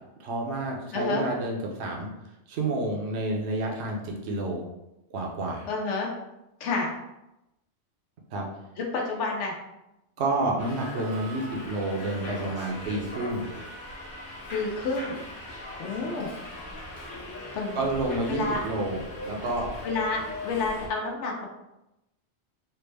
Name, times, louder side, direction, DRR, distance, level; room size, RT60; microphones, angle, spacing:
voice 1, 0.2-2.1 2.5-4.6 5.1-5.7 8.3-8.5 10.2-13.5 17.7-19.0 19.2-19.7, right 2 dB, 70° right, -1 dB, 0.9 m, -29 dB
voice 2, 0.9-1.2 5.7-6.1 6.6-6.9 8.8-9.5 14.5-15.2 15.8-16.3 17.5-17.8 18.3-18.6 19.8-21.5, left 3 dB, 85° left, -1 dB, 1.0 m, -29 dB
Subway metro underground, 10.6-20.9, left 1 dB, 50° left, 1.0 m, -40 dB
3.3 x 2.1 x 3.2 m, 0.91 s
omnidirectional pair, 1.2 m